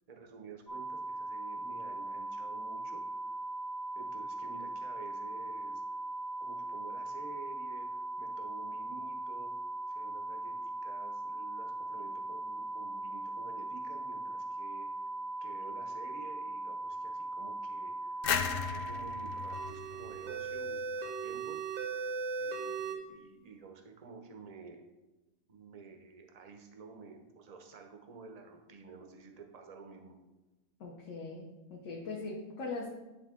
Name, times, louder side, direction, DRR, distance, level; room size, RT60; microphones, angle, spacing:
voice 1, 0.1-3.4 3.9-5.8 6.4-9.5 9.9-14.9 15.4-18.2 18.5-21.6 22.4-24.8 25.5-30.2, right 4 dB, 40° right, 4 dB, 0.6 m, -51 dB
sound 1, 0.7-19.7, right 2 dB, ahead, 0.8 m, -39 dB
sound 2, 18.2-20.9, left 7 dB, 90° left, 0.5 m, -36 dB
sound 3, 19.5-23.0, right 5 dB, 75° right, 1.2 m, -38 dB
voice 2, 30.8-32.9, left 3 dB, 60° left, -3 dB, 1.2 m, -41 dB
9.7 x 3.5 x 3.6 m, 1.1 s
omnidirectional pair, 1.5 m